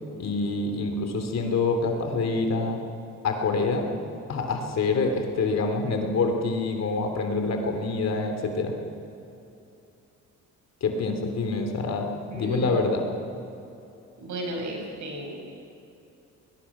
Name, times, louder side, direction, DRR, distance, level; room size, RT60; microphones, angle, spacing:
voice 1, 0.2-2.8 3.2-3.9 4.3-8.7 10.8-12.1 12.3-13.1, left 3 dB, 60° left, 4 dB, 3.1 m, -26 dB
voice 2, 12.3-12.8 14.2-15.4, right 1 dB, 75° right, 1 dB, 5.7 m, -34 dB
21.5 x 20.0 x 6.1 m, 2.8 s
cardioid pair, 90°, 30 cm